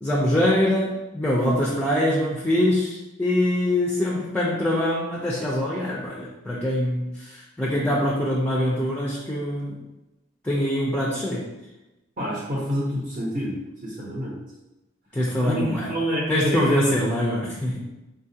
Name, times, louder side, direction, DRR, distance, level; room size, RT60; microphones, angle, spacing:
voice 1, 0.0-9.8 10.4-11.5 15.1-15.9 16.3-17.8, left 1 dB, 5° left, -4 dB, 0.4 m, -24 dB
voice 2, 12.2-13.6 13.8-14.4 15.4-17.1, equal, 40° right, -5 dB, 0.7 m, -27 dB
3.7 x 2.3 x 2.7 m, 0.98 s
head